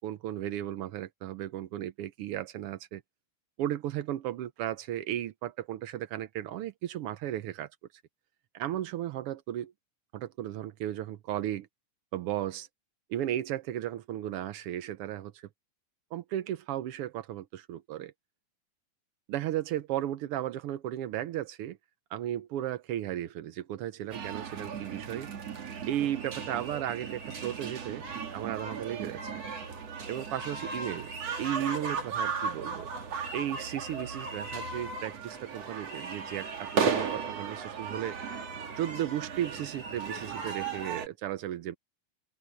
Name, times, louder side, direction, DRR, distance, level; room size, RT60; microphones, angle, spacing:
voice 1, 0.0-3.0 3.6-7.7 8.5-9.7 10.1-11.7 12.1-12.7 13.1-15.5 16.1-18.1 19.3-21.8 22.1-25.3 25.9-28.0 28.3-29.3 30.1-31.1 31.4-32.9 33.3-38.2 38.8-41.8, right 12 dB, 80° right, 1.3 m, -35 dB
sound 1, 24.1-41.1, right 5 dB, 55° right, 3.6 m, -36 dB
open air
omnidirectional pair, 3.5 m